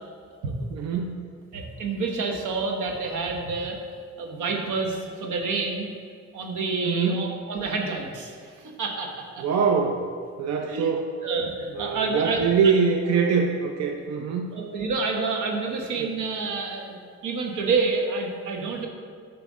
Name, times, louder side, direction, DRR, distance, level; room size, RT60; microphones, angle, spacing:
voice 1, 0.7-1.2 6.8-7.2 9.4-10.1 10.4-11.1 11.7-14.5 16.0-16.1, right 5 dB, 60° right, 2 dB, 0.7 m, -24 dB
voice 2, 1.5-3.8 4.2-5.9 6.3-9.4 10.6-10.9 11.2-12.5 14.5-17.0 17.2-18.9, right 4 dB, 80° right, 2 dB, 1.2 m, -28 dB
9.2 x 3.3 x 6.1 m, 2.1 s
cardioid pair, 90°, 30 cm